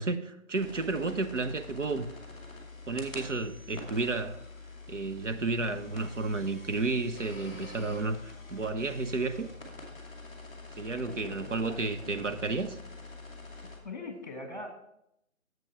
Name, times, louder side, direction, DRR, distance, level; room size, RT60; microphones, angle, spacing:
voice 1, 0.0-2.1 2.9-4.4 4.9-9.5 10.8-12.8, right 3 dB, 60° right, 0.8 m, -32 dB
sound 1, 0.5-13.8, left 3 dB, 5° right, 1.4 m, -46 dB
voice 2, 11.0-12.3 13.8-14.7, left 2 dB, 35° left, 1.4 m, -43 dB
7.8 x 7.4 x 4.4 m
figure-of-eight pair, 180°, 41 cm